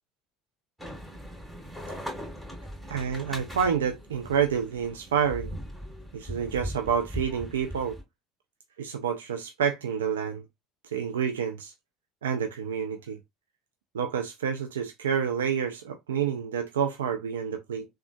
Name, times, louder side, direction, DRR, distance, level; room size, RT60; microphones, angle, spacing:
sound 1, 0.8-8.0, equal, 10° right, 2.1 m, -39 dB
voice 1, 2.9-5.5 6.1-8.0 8.8-10.4 10.8-11.7 12.2-13.2 13.9-17.9, right 7 dB, 85° right, 0.3 m, -28 dB
3.6 x 2.3 x 2.2 m
hypercardioid pair, 70°, 0 cm